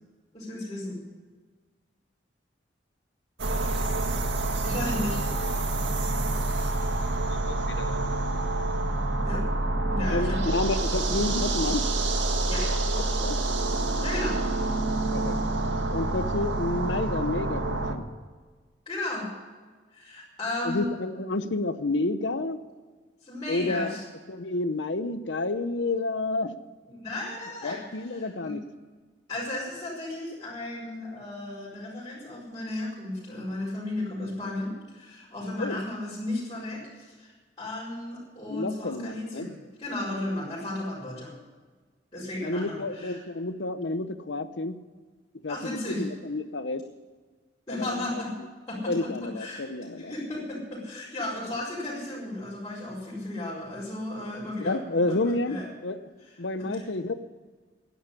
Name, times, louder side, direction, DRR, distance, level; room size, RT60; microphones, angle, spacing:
voice 1, 0.3-1.0 4.6-5.2 9.2-9.5 9.9-10.7 12.5-12.7 14.0-14.4 18.9-19.3 19.9-20.9 23.2-24.0 26.9-28.6 29.3-41.3 42.1-43.2 45.5-46.0 47.7-48.4 48.7-49.6 50.0-54.8 55.1-55.7 56.6-56.8, left 1 dB, 25° left, -10 dB, 5.2 m, -34 dB
sound 1, 3.4-17.9, right 2 dB, 85° right, 1.7 m, -27 dB
voice 2, 7.3-8.0 10.1-11.9 13.2-13.4 15.1-15.3 15.9-18.0 20.6-22.6 23.5-24.0 24.3-26.6 27.6-28.6 35.6-35.8 38.5-39.5 42.4-44.8 45.4-46.9 47.7-48.2 48.9-50.1 54.6-56.0 56.4-57.1, left 2 dB, 80° left, 12 dB, 0.9 m, -30 dB
11.0 x 10.5 x 9.9 m, 1.4 s
head